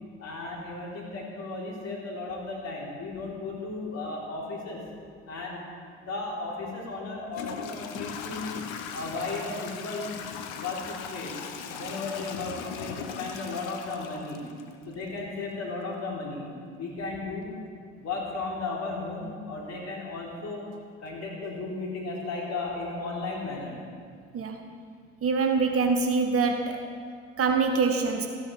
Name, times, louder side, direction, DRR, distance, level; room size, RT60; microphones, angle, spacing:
voice 1, 0.2-4.8 5.3-8.5 8.9-10.1 10.5-11.4 11.7-14.4 14.9-17.5 18.0-20.7 21.0-23.8, left 3 dB, 45° left, -3 dB, 3.6 m, -35 dB
Toilet flush / Trickle dribble, 6.5-6.6 7.3-15.1, left 6 dB, 65° left, 1.0 m, -39 dB
voice 2, 25.2-26.8 27.4-28.3, right 4 dB, 40° right, 4 dB, 1.2 m, -24 dB
14.0 x 8.9 x 4.8 m, 2.1 s
hypercardioid pair, 65°, 37 cm